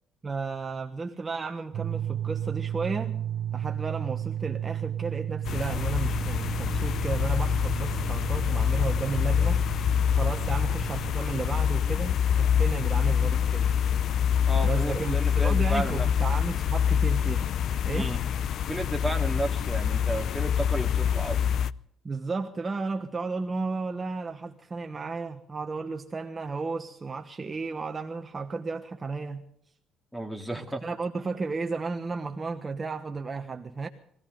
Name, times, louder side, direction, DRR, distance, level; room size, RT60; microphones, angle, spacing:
voice 1, 0.2-3.2 3.5-9.6 10.1-13.7 14.6-17.5 17.8-18.1 22.0-29.4 30.8-33.9, right 4 dB, 25° right, 4 dB, 1.2 m, -33 dB
sound 1, 1.7-11.1, right 10 dB, 55° right, 0.5 m, -33 dB
sound 2, 5.4-21.7, left 8 dB, 55° left, 0.6 m, -26 dB
voice 2, 14.5-16.1 17.9-18.2 18.7-21.5 30.1-30.8, right 1 dB, ahead, 5 dB, 2.3 m, -33 dB
22.0 x 16.5 x 3.8 m, 0.67 s
cardioid pair, 130°, 0 cm